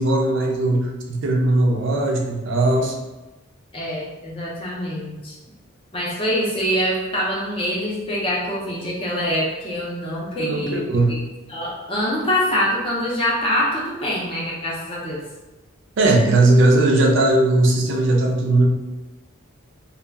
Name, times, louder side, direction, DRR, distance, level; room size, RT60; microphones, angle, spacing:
voice 1, 0.0-3.0 10.4-11.2 16.0-18.7, right 2 dB, 55° right, 2 dB, 0.4 m, -18 dB
voice 2, 3.7-5.3 5.9-11.2 11.5-15.2, equal, 25° left, -4 dB, 0.5 m, -24 dB
2.3 x 2.0 x 3.3 m, 1.1 s
head